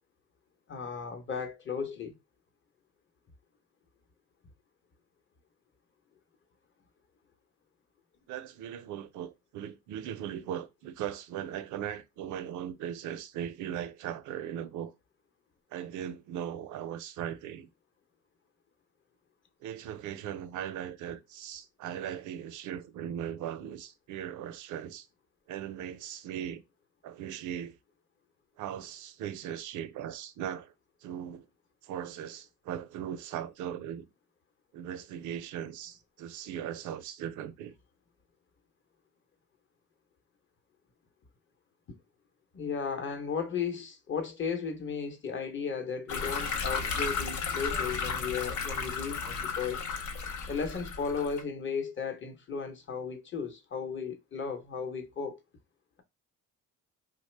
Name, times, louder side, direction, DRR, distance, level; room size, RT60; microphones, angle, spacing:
voice 1, 0.7-2.1 42.5-49.8 50.5-55.4, left 6 dB, 40° left, 0.8 m, -35 dB
voice 2, 8.3-14.9 15.7-17.7 19.6-25.1 25.5-26.6 27.0-27.8 28.6-30.7 31.0-31.5 31.8-34.1 34.7-37.7, right 10 dB, 80° right, 0.5 m, -38 dB
sound 1, 46.1-51.4, left 5 dB, 75° left, 0.6 m, -34 dB
3.0 x 2.0 x 3.2 m
cardioid pair, 90°, 30 cm